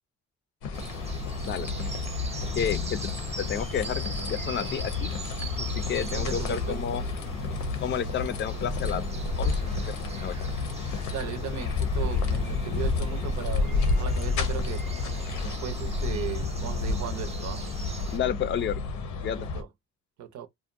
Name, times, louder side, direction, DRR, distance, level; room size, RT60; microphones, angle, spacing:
sound 1, 0.6-19.6, left 4 dB, 80° left, 0.7 m, -30 dB
sound 2, 0.7-18.2, right 2 dB, 20° right, 0.6 m, -40 dB
voice 1, 2.5-3.1 3.4-4.0 4.3-5.1 5.6-7.0 7.8-9.1 9.4-10.4 18.1-18.8 19.2-19.5, left 9 dB, 40° left, 0.4 m, -31 dB
voice 2, 6.1-6.8 11.1-14.9 15.4-17.6 19.4-19.7 20.2-20.5, right 10 dB, 70° right, 0.7 m, -37 dB
2.5 x 2.1 x 2.5 m
cardioid pair, 90°, 30 cm